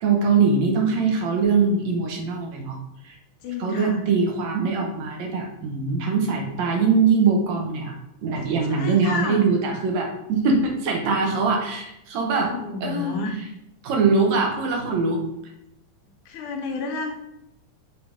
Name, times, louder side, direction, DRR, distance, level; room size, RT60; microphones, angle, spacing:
voice 1, 0.0-2.8 3.0-3.2 3.6-7.9 8.2-12.5 12.8-13.4 13.8-15.2, right 4 dB, 70° right, 1 dB, 2.3 m, -22 dB
voice 2, 3.4-4.0 8.7-9.4 12.5-13.3 16.3-17.1, left 4 dB, 75° left, 1 dB, 2.5 m, -30 dB
6.9 x 4.8 x 5.2 m, 0.83 s
omnidirectional pair, 3.6 m